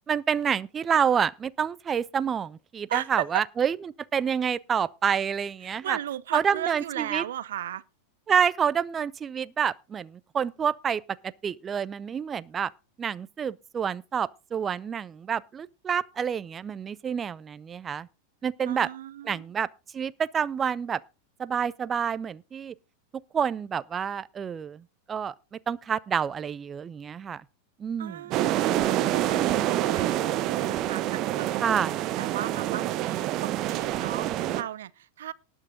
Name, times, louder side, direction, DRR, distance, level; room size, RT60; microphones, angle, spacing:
voice 1, 0.1-3.8 4.1-6.0 6.3-7.2 8.3-11.0 11.4-12.7 13.0-18.1 18.4-18.9 19.3-19.7 19.9-21.0 21.4-22.7 23.3-25.3 25.7-27.4 27.8-28.2 31.6-32.0, right 7 dB, 20° right, 0.5 m, -28 dB
voice 2, 2.9-3.4 5.6-7.8 18.7-19.5 28.0-31.5 32.0-35.3, right 11 dB, 60° right, 0.7 m, -36 dB
sound 1, 28.3-34.6, right 13 dB, 35° right, 0.9 m, -27 dB
19.0 x 6.4 x 3.8 m
figure-of-eight pair, 90°, 0 cm